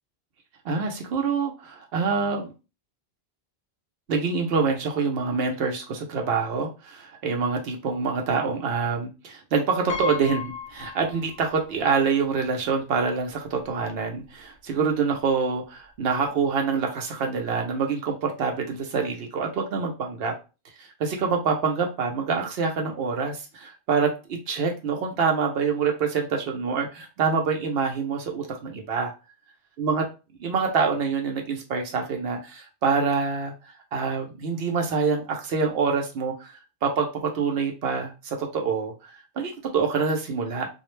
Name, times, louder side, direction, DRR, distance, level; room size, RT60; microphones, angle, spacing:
voice 1, 0.6-2.5 4.1-20.3 20.8-24.1 24.5-29.1 29.8-30.0 30.4-33.5 33.9-40.7, right 5 dB, 75° right, 3 dB, 0.8 m, -26 dB
Piano, 9.9-11.7 12.0-12.1 13.3-13.4 13.7-13.9, left 6 dB, 55° left, 0.6 m, -34 dB
2.4 x 2.0 x 3.0 m, 0.30 s
omnidirectional pair, 1.0 m